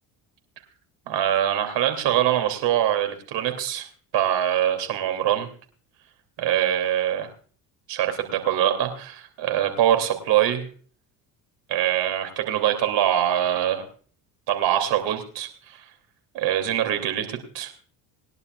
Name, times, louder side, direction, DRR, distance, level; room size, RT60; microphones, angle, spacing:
voice 1, 1.1-3.9 4.1-5.5 6.4-7.3 7.9-10.7 11.7-13.9 14.5-15.9 16.3-17.7, right 11 dB, 65° right, 6 dB, 2.9 m, -23 dB
21.0 x 11.0 x 2.4 m, 0.42 s
supercardioid pair, 80°, 45 cm